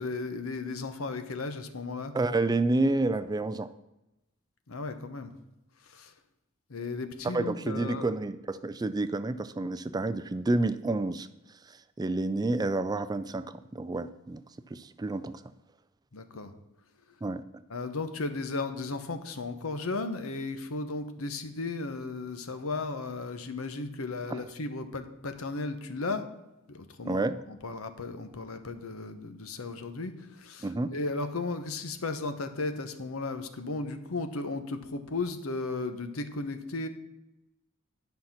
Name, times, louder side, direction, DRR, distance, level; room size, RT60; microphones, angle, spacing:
voice 1, 0.0-2.1 4.7-5.3 5.8-6.1 6.7-8.1 16.1-16.5 17.7-26.3 26.7-27.2 27.5-36.9, left 3 dB, 90° left, 9 dB, 1.0 m, -35 dB
voice 2, 2.1-3.7 7.3-11.3 12.0-14.4 14.7-15.4 17.2-17.4 24.3-24.4 27.1-27.4 30.6-30.9, right 2 dB, 20° right, 12 dB, 0.4 m, -29 dB
10.5 x 5.7 x 5.8 m, 0.95 s
head